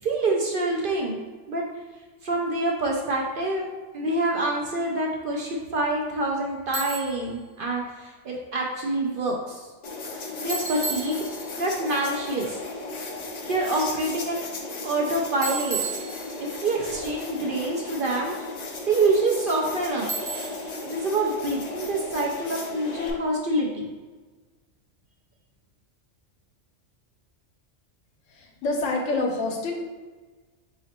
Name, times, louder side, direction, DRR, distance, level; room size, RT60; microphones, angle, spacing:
voice 1, 0.0-1.6 2.2-3.7 3.9-9.7 10.4-11.2 11.6-12.5 13.5-14.5 14.8-15.8 16.4-18.3 18.9-20.1 20.8-23.9, right 2 dB, 55° right, -1 dB, 0.6 m, -26 dB
Bicycle, 6.7-7.3 10.5-11.7 15.4-16.7 20.1-20.7, right 4 dB, 15° right, 0.9 m, -33 dB
sound 1, 9.8-23.1, left 3 dB, 50° left, 0.5 m, -36 dB
voice 2, 28.3-29.7, left 2 dB, 80° left, 1 dB, 1.1 m, -27 dB
4.0 x 3.0 x 4.1 m, 1.3 s
omnidirectional pair, 1.3 m